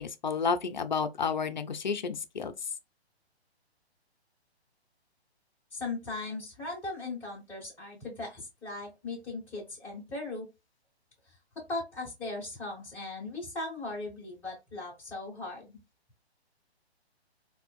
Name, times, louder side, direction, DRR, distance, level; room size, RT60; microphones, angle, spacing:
voice 1, 0.0-2.5, left 5 dB, 45° left, 0.4 m, -31 dB
voice 2, 5.7-10.5 11.7-15.8, left 2 dB, 5° left, 0.8 m, -38 dB
3.5 x 2.5 x 2.3 m
figure-of-eight pair, 135°, 33 cm